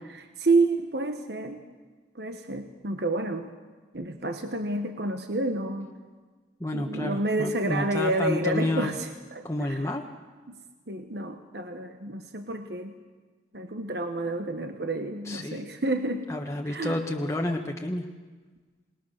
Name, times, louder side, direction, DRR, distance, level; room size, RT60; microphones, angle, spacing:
voice 1, 0.1-1.6 2.1-3.5 3.9-5.9 6.7-9.9 10.5-10.6 10.9-12.9 13.5-16.3 16.7-17.0, right 2 dB, 65° right, 6 dB, 1.3 m, -29 dB
voice 2, 6.6-8.9 9.4-10.1 15.2-15.6 16.3-18.1, left 1 dB, 15° left, 1 dB, 1.2 m, -30 dB
27.5 x 20.0 x 6.6 m, 1.4 s
head